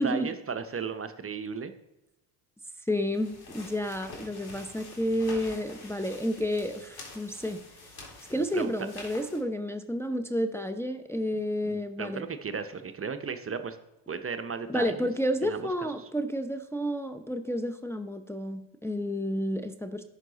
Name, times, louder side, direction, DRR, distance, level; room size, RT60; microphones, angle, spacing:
voice 1, 0.0-1.7 8.3-8.7 11.6-13.8 14.1-15.1 15.4-15.7, right 5 dB, 30° right, 9 dB, 0.8 m, -35 dB
voice 2, 2.9-7.6 8.3-12.2 14.7-20.0, equal, 5° left, 6 dB, 0.7 m, -30 dB
sound 1, 3.1-9.4, left 2 dB, 50° left, 3.4 m, -47 dB
10.5 x 5.8 x 4.0 m, 0.96 s
hypercardioid pair, 65°, 49 cm